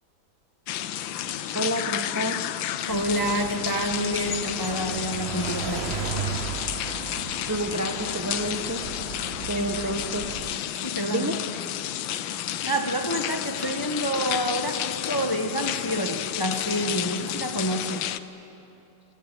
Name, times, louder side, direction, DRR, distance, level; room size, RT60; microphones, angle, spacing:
sound 1, 0.7-18.2, left 11 dB, 85° left, 1.5 m, -31 dB
voice 1, 1.5-2.4 7.5-8.8 9.5-10.3 11.0-11.6, equal, 10° right, 5 dB, 0.8 m, -29 dB
voice 2, 2.9-6.0 9.3-10.0 10.8-11.3 11.9-12.0 12.6-18.1, equal, 15° left, 5 dB, 0.9 m, -28 dB
sound 2, 2.9-10.6, right 8 dB, 75° right, 0.6 m, -36 dB
25.5 x 21.0 x 9.3 m, 2.9 s
omnidirectional pair, 2.1 m